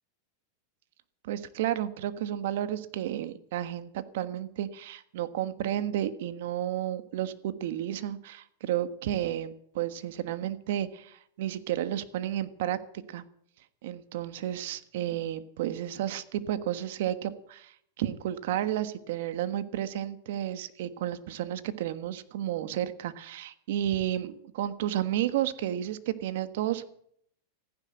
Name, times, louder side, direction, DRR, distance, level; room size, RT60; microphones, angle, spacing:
voice 1, 1.2-12.8 13.1-13.2 13.8-26.9, right 12 dB, 70° right, 13 dB, 1.3 m, -32 dB
15.0 x 10.5 x 7.7 m, 0.68 s
supercardioid pair, 135°, 0 cm